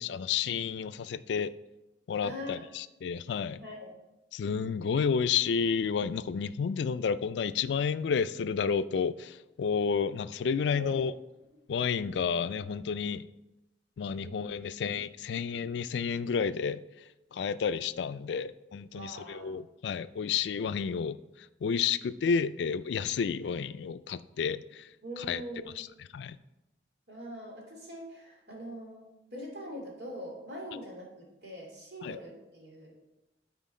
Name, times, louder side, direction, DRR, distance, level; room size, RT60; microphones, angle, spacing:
voice 1, 0.0-1.5 2.1-3.6 4.3-11.1 11.7-13.3 14.0-25.4 25.8-26.4 32.0-32.2, left 6 dB, 75° left, 14 dB, 0.3 m, -31 dB
voice 2, 2.2-2.6 3.6-3.9 10.7-11.0 14.2-14.3 18.9-19.6 25.0-25.7 27.1-29.0 29.3-32.9, equal, 65° right, -1 dB, 2.5 m, -43 dB
12.5 x 4.4 x 4.3 m, 0.98 s
head